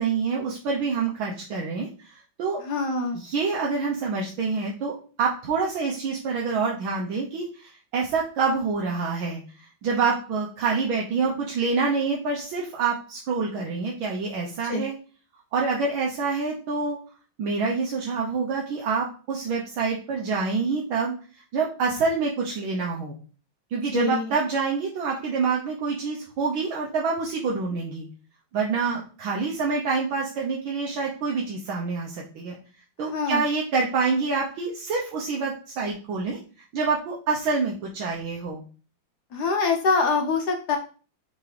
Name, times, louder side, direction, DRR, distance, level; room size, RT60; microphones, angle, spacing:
voice 1, 0.0-2.6 3.1-15.0 15.5-17.0 17.4-21.1 21.5-23.2 23.7-28.1 28.5-32.6 33.0-36.4 36.7-38.6, right 4 dB, 80° right, -2 dB, 1.8 m, -27 dB
voice 2, 2.6-3.2 14.6-14.9 23.9-24.3 33.1-33.4 39.3-40.8, left 4 dB, 65° left, 4 dB, 1.2 m, -24 dB
5.8 x 5.2 x 3.3 m, 0.39 s
omnidirectional pair, 2.2 m